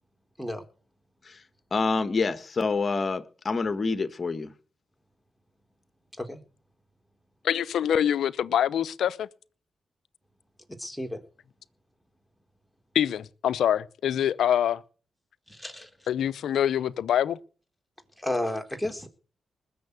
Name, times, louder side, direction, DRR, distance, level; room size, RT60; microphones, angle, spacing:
voice 1, 1.7-4.5, left 4 dB, 45° left, 1.7 m, -27 dB
voice 2, 7.4-9.3 12.9-14.8 16.1-17.4, left 10 dB, 80° left, 0.7 m, -25 dB
voice 3, 10.8-11.2 15.5-15.9 18.2-19.1, left 1 dB, ahead, 3.9 m, -32 dB
20.0 x 7.0 x 8.3 m
supercardioid pair, 50°, 0 cm